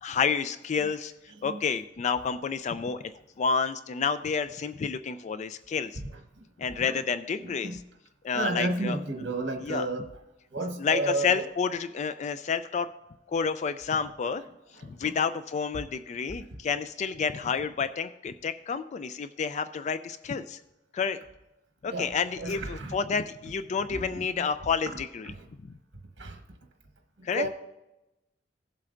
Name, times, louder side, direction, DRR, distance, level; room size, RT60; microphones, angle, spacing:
voice 1, 0.0-1.1 1.4-3.0 3.4-6.0 6.6-7.8 8.2-9.0 9.6-9.9 10.8-12.9 13.3-14.4 14.8-20.6 20.9-21.2 21.8-25.3 27.2-27.5, left 6 dB, 40° left, 12 dB, 0.3 m, -29 dB
voice 2, 7.4-7.8 8.3-10.1 10.5-11.5 14.7-15.1 21.8-22.1 22.4-23.0 23.9-24.1 24.3-24.5 25.3-25.5 26.2-26.4 27.2-27.5, right 2 dB, 80° right, 4 dB, 1.1 m, -32 dB
16.5 x 7.6 x 2.5 m, 0.96 s
head